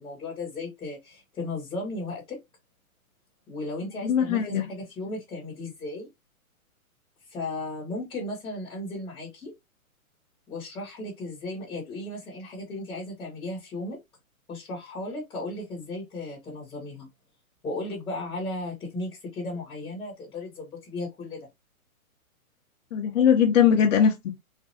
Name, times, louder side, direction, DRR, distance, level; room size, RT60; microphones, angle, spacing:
voice 1, 0.0-2.4 3.5-6.1 7.3-9.5 10.5-14.0 14.5-17.1 17.6-21.5, left 2 dB, 10° left, 1.0 m, -35 dB
voice 2, 4.0-4.6 22.9-24.3, left 8 dB, 60° left, 0.8 m, -20 dB
3.2 x 2.1 x 2.6 m
hypercardioid pair, 145°, 43 cm